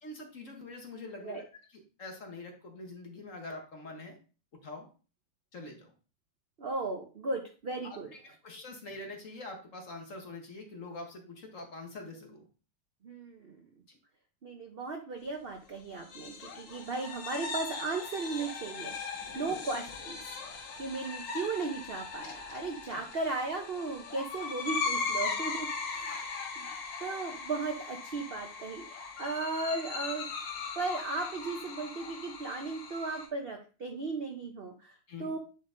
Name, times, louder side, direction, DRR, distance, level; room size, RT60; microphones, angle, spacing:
voice 1, 0.0-4.2 4.6-4.9 5.5-5.9 7.8-12.4 13.9-14.0 19.3-19.6 22.9-23.0 26.1-26.2 35.1-35.3, left 2 dB, 45° left, 2 dB, 1.5 m, -45 dB
voice 2, 6.6-8.1 13.0-13.6 14.4-18.9 19.3-20.2 20.5-26.4 27.0-30.3 30.8-34.9 35.2-35.4, right 3 dB, 50° right, 3 dB, 0.7 m, -36 dB
sound 1, 16.0-33.3, left 4 dB, 75° left, 1.9 m, -39 dB
9.2 x 4.0 x 3.8 m, 0.35 s
omnidirectional pair, 2.1 m